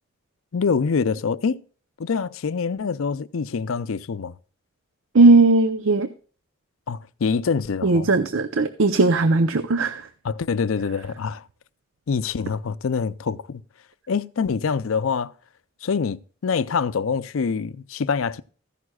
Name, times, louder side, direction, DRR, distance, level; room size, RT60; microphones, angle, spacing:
voice 1, 0.5-1.6 2.0-4.3 6.9-8.1 10.2-11.4 12.1-13.6 14.1-15.3 15.8-18.4, left 5 dB, 80° left, 0.5 m, -25 dB
voice 2, 5.1-6.1 7.8-10.0, right 3 dB, 75° right, 0.6 m, -17 dB
14.5 x 11.0 x 2.3 m
head